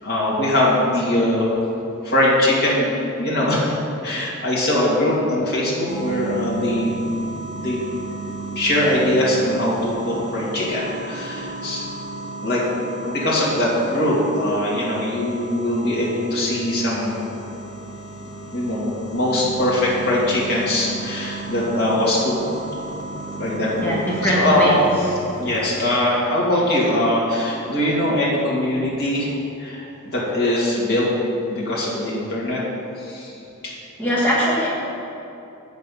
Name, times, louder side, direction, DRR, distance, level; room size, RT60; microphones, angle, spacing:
voice 1, 0.0-1.6 2.0-2.9 3.2-3.7 4.0-6.9 7.5-7.8 8.6-11.8 12.4-12.6 13.0-17.2 18.2-22.3 23.4-23.9 24.2-24.7 25.4-31.1 31.5-32.6 33.0-33.3 33.6-33.7, left 1 dB, 50° left, -6 dB, 2.3 m, -21 dB
sound 1, 5.9-25.7, right 3 dB, 90° left, 1.0 m, -34 dB
voice 2, 23.8-24.8 34.0-34.7, equal, 10° left, -7 dB, 1.3 m, -20 dB
8.0 x 6.8 x 5.5 m, 2.8 s
head